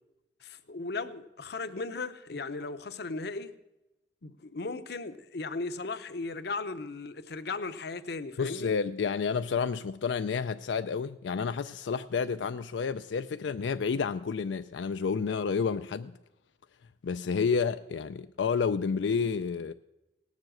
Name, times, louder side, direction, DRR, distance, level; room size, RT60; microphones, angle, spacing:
voice 1, 0.4-3.5 4.2-8.7, left 3 dB, 65° left, 0.8 m, -37 dB
voice 2, 8.4-16.1 17.0-19.7, left 5 dB, 90° left, 0.4 m, -30 dB
18.0 x 7.3 x 7.7 m
head